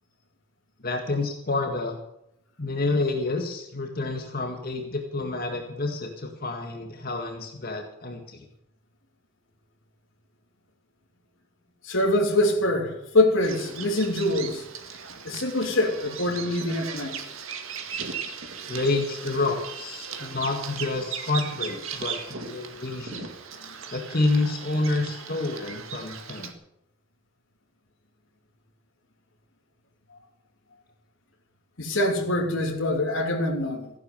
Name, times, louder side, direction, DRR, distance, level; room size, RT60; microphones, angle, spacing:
voice 1, 0.8-2.0 2.6-8.4 18.7-23.3 23.9-26.5, left 2 dB, 50° left, 1.9 m, -28 dB
voice 2, 11.8-14.6 15.2-17.2 31.8-33.9, left 1 dB, 75° left, 3.0 m, -24 dB
Bird vocalization bird call bird song, 13.4-26.5, right 6 dB, 85° right, 2.0 m, -38 dB
15.5 x 11.0 x 7.0 m
head